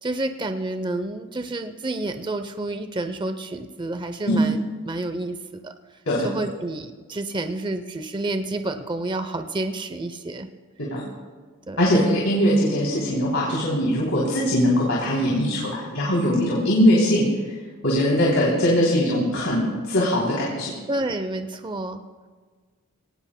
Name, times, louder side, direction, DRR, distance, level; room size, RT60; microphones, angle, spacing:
voice 1, 0.0-5.7 6.2-10.5 11.7-11.9 20.9-22.0, right 2 dB, 20° right, 8 dB, 0.6 m, -29 dB
voice 2, 11.8-17.3 17.8-20.7, equal, 65° left, -5 dB, 3.2 m, -21 dB
23.0 x 18.5 x 2.2 m, 1.5 s
head